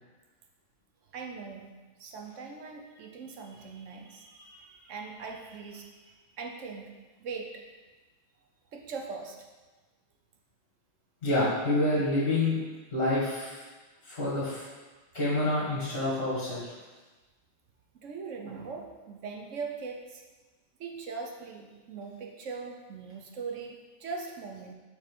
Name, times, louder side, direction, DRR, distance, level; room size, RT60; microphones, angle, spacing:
voice 1, 1.1-1.7 2.0-6.0 6.4-6.9 7.2-7.6 8.7-9.4 17.9-20.2 20.8-24.7, right 4 dB, 65° right, 2 dB, 1.1 m, -40 dB
voice 2, 11.2-12.6 12.9-13.6 14.0-14.7 15.1-16.7, left 2 dB, 45° left, -8 dB, 1.7 m, -27 dB
6.5 x 3.5 x 5.2 m, 1.3 s
omnidirectional pair, 1.4 m